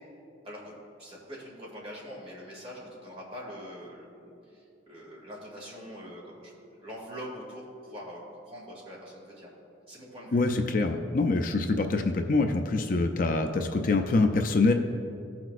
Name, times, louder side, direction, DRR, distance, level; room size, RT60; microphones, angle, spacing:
voice 1, 1.0-9.5 9.9-10.5, equal, 30° right, -4 dB, 2.1 m, -43 dB
voice 2, 10.3-14.7, left 3 dB, 45° left, 5 dB, 0.4 m, -25 dB
16.0 x 6.0 x 2.5 m, 2.6 s
head